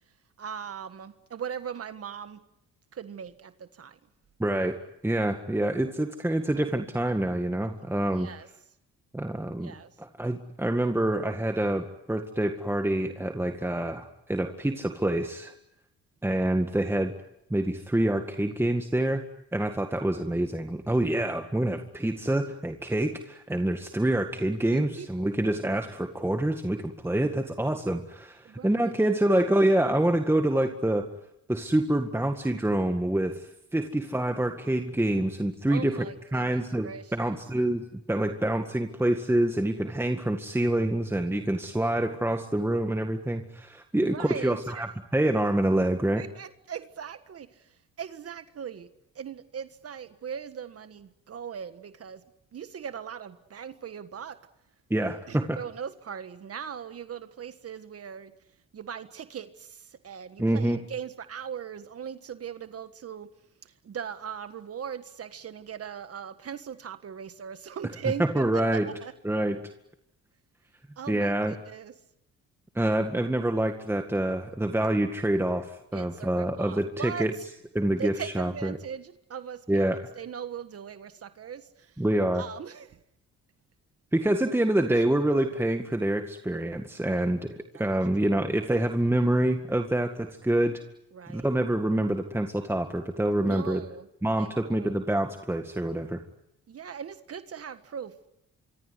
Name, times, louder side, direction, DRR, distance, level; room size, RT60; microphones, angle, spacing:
voice 1, 0.4-2.4 2.9-4.0 8.2-8.5 9.6-9.9 24.7-25.1 28.4-29.1 35.7-36.6 36.8-37.3 44.0-44.9 46.1-48.9 49.1-52.2 52.5-54.4 55.3-58.3 58.7-63.3 63.6-69.1 71.0-71.9 75.9-77.5 78.0-82.0 82.3-83.0 87.0-87.3 87.7-88.0 91.1-91.5 93.4-94.1 94.4-95.0 96.7-98.3, right 7 dB, 50° right, 11 dB, 1.6 m, -39 dB
voice 2, 4.4-8.3 9.1-9.7 10.0-15.5 16.2-17.1 17.5-19.2 19.5-31.1 31.5-36.1 36.3-46.2 54.9-55.6 60.4-60.8 68.2-68.9 69.2-69.6 71.1-71.5 72.8-77.3 77.7-78.8 79.7-80.0 82.0-82.5 84.1-90.8 91.3-93.8 94.2-96.2, right 1 dB, 10° right, 6 dB, 1.9 m, -26 dB
25.5 x 24.0 x 9.7 m, 0.81 s
cardioid pair, 90°, 30 cm